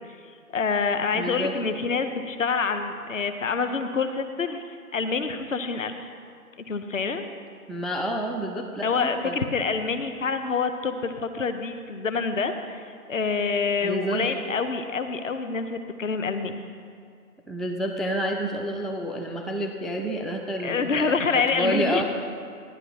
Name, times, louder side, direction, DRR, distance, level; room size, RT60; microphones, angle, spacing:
voice 1, 0.5-4.6 4.9-6.1 6.7-7.2 8.8-12.8 13.1-16.6 20.6-22.0, left 5 dB, 55° left, 8 dB, 0.9 m, -26 dB
voice 2, 1.1-1.6 7.7-9.4 13.8-14.3 17.5-22.0, equal, ahead, 2 dB, 0.4 m, -29 dB
16.0 x 11.0 x 2.9 m, 2.2 s
figure-of-eight pair, 165°, 45 cm